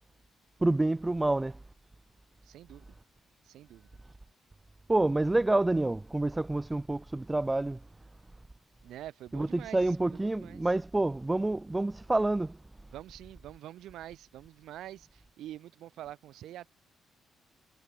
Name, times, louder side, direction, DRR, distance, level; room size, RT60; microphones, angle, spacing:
voice 1, 0.6-1.6 4.9-7.8 9.3-12.6, right 2 dB, 15° right, 1.3 m, -28 dB
voice 2, 2.4-2.9 3.4-3.9 8.8-9.8 10.1-10.6 12.9-16.7, right 13 dB, 80° right, 4.3 m, -46 dB
cardioid pair, 90°, 0 cm